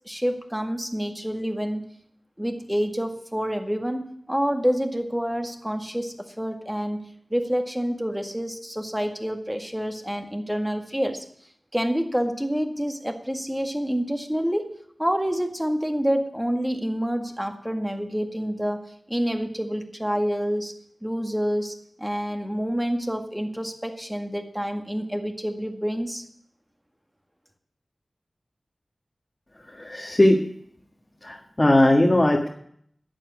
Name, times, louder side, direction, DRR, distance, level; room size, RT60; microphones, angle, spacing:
voice 1, 0.1-1.9 2.4-11.2 11.7-20.7 21.0-26.2, equal, 5° right, 5 dB, 1.9 m, -28 dB
voice 2, 29.8-30.4 31.2-32.5, left 1 dB, 30° left, 0 dB, 1.8 m, -19 dB
11.0 x 7.6 x 9.6 m, 0.65 s
wide cardioid pair, 50°, 0 cm